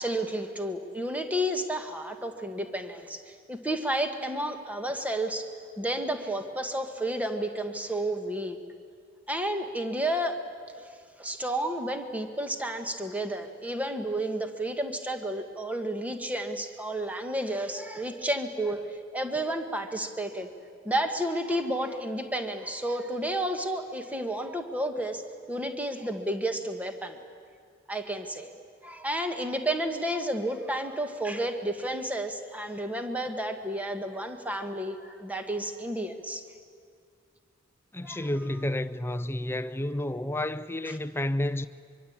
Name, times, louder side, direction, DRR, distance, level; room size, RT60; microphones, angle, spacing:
voice 1, 0.0-8.6 9.3-10.4 10.7-10.9 11.2-20.5 20.8-25.2 25.5-27.2 27.9-28.5 28.8-36.4 38.0-38.3 40.8-41.0, right 1 dB, 5° right, 1.5 m, -31 dB
voice 2, 37.9-41.7, left 1 dB, 10° left, 0.6 m, -30 dB
24.0 x 24.0 x 8.7 m
head